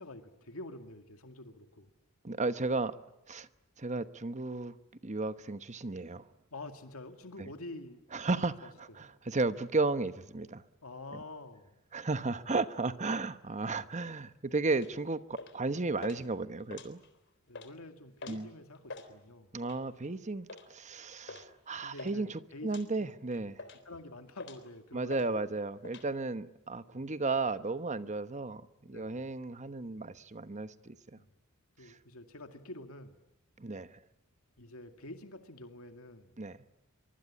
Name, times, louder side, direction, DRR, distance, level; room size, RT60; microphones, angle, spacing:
voice 1, 0.0-1.9 6.5-8.1 8.3-9.1 10.8-11.8 17.5-19.5 21.3-21.4 21.8-23.1 23.3-25.5 26.9-27.0 28.9-29.2 31.2-31.3 31.8-33.2 34.6-36.4, left 2 dB, 85° left, 2.2 m, -48 dB
voice 2, 2.2-3.0 3.3-3.5 3.8-4.8 5.0-6.2 7.4-7.5 8.1-10.6 11.9-17.0 18.3-18.5 19.5-23.6 24.9-31.2 31.9-32.0 33.6-33.9 36.4-36.6, right 3 dB, 35° right, 1.1 m, -34 dB
sound 1, 14.7-14.9 15.4-15.7 16.0-16.2 16.6-17.2 17.5-17.7 18.2-18.4 18.7-19.1 19.6-19.9 20.5-20.7 21.3-21.5 21.7-22.2 22.7-22.9 23.3-23.9 24.4-24.7 25.1-25.3 25.5-26.1, left 3 dB, 55° left, 3.8 m, -46 dB
24.5 x 24.0 x 9.9 m
head